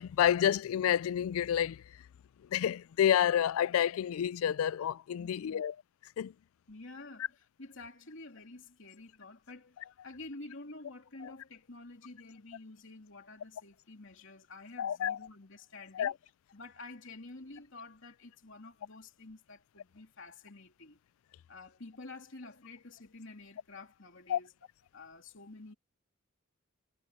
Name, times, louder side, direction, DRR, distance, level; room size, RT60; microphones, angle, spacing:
voice 1, 0.0-1.8 2.5-5.8 6.2-6.3 14.8-15.2 15.9-16.1 24.3-24.4, left 10 dB, 80° left, 0.3 m, -29 dB
voice 2, 5.1-5.6 6.7-16.2 16.5-21.0 21.5-24.5 24.9-25.7, left 2 dB, 65° left, 3.1 m, -50 dB
head